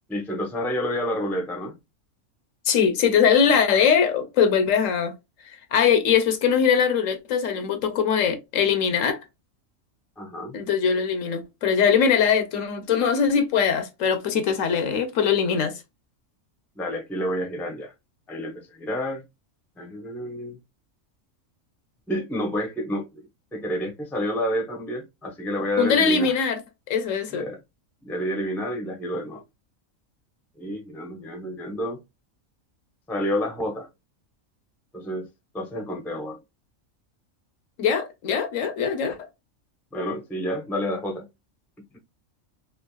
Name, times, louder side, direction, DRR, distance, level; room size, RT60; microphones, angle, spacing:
voice 1, 0.1-1.8 10.2-10.6 16.8-17.9 18.3-19.2 19.8-20.6 22.1-26.3 27.3-27.6 28.0-29.4 30.6-32.0 33.1-33.9 34.9-35.3 35.5-36.4 39.9-41.3, equal, ahead, 0.4 m, -29 dB
voice 2, 2.7-5.1 5.5-9.2 10.5-15.8 25.8-26.6 26.9-27.5 37.8-39.2, left 7 dB, 75° left, 1.0 m, -21 dB
3.4 x 2.5 x 2.2 m
omnidirectional pair, 1.4 m